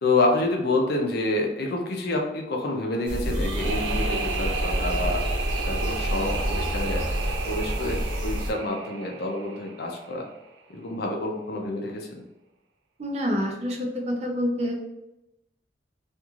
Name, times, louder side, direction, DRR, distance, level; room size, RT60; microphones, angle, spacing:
voice 1, 0.0-5.2 5.6-7.1 7.4-10.3 10.7-12.1, left 2 dB, 60° left, 1 dB, 0.5 m, -28 dB
sound 1, 3.1-8.5, equal, 55° right, 0.9 m, -28 dB
sound 2, 3.3-10.3, right 4 dB, 85° right, 0.4 m, -33 dB
voice 2, 13.0-13.8 14.1-14.7, equal, 35° right, 1 dB, 0.5 m, -27 dB
3.0 x 2.5 x 2.3 m, 0.92 s
head